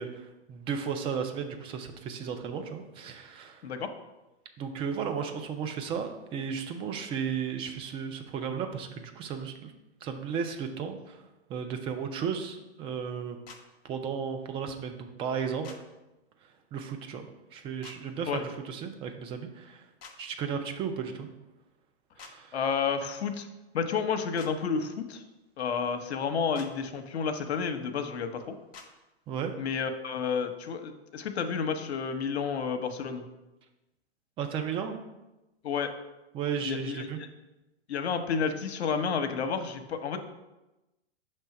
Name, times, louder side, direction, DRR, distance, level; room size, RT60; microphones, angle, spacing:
voice 1, 0.0-3.6 4.6-9.7 10.0-11.2 11.5-13.4 13.8-15.7 16.7-19.8 20.2-21.3 22.2-22.6 29.3-29.5 34.4-35.0 36.3-37.2, right 7 dB, 15° right, 6 dB, 0.4 m, -34 dB
sound 1, 13.5-13.6 15.6-15.8 17.8-18.0 20.0-20.2 22.2-22.3 24.4-24.5 26.5-26.7 28.7-28.9, left 5 dB, 25° left, 0.8 m, -47 dB
voice 2, 22.5-23.5 23.7-25.2 25.6-28.5 29.6-33.2 35.6-35.9 36.6-37.3 37.9-40.2, left 6 dB, 75° left, 7 dB, 0.8 m, -31 dB
6.2 x 3.2 x 5.7 m, 1.0 s
hypercardioid pair, 130°, 32 cm